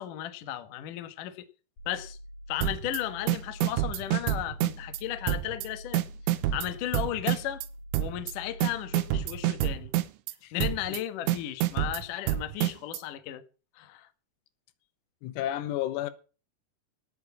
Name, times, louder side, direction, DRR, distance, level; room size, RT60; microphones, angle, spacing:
voice 1, 0.0-1.5 1.9-2.2 2.5-6.0 6.5-7.6 8.0-9.9 10.5-13.4 13.8-14.1, left 12 dB, 70° left, 2.0 m, -35 dB
sound 1, 1.8-9.8, equal, 45° left, 4.7 m, -46 dB
sound 2, 2.6-3.0 3.3-5.0 5.3-5.7 5.9-7.7 7.9-8.3 8.6-10.3 10.6-11.0 11.3-13.0, right 13 dB, 75° right, 3.2 m, -28 dB
voice 2, 15.2-16.1, left 13 dB, 85° left, 3.9 m, -31 dB
18.0 x 6.7 x 8.5 m
omnidirectional pair, 5.9 m